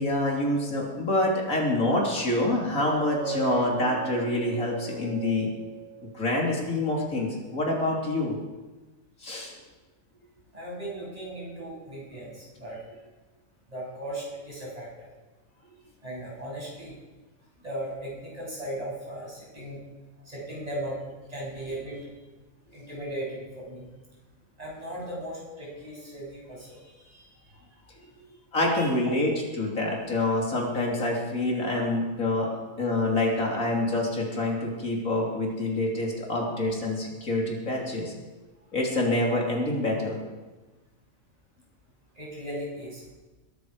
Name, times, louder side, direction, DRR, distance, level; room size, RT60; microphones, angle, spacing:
voice 1, 0.0-5.5 6.1-8.4 9.2-9.5 28.5-32.5 32.8-38.1 38.7-40.2, left 2 dB, 80° left, -1 dB, 3.6 m, -26 dB
sound 1, 2.8-6.4, right 9 dB, 90° right, 1.3 m, -37 dB
voice 2, 10.5-12.8 13.7-15.1 16.0-17.0 17.6-19.8 20.3-21.0 21.3-22.1 22.7-23.9 24.6-27.6 28.7-28.9 32.3-32.6 42.2-43.0, right 1 dB, 30° right, -5 dB, 7.0 m, -37 dB
21.0 x 13.5 x 4.9 m, 1.2 s
omnidirectional pair, 1.4 m